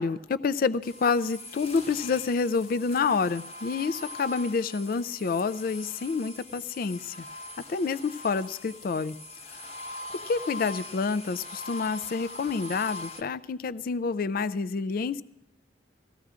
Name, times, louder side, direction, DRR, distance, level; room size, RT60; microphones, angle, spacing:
voice 1, 0.0-7.2 7.7-9.2 10.3-15.2, left 4 dB, 50° left, 17 dB, 0.3 m, -28 dB
sound 1, 0.8-13.2, left 2 dB, 35° left, 1.0 m, -42 dB
19.0 x 14.5 x 2.4 m, 0.90 s
head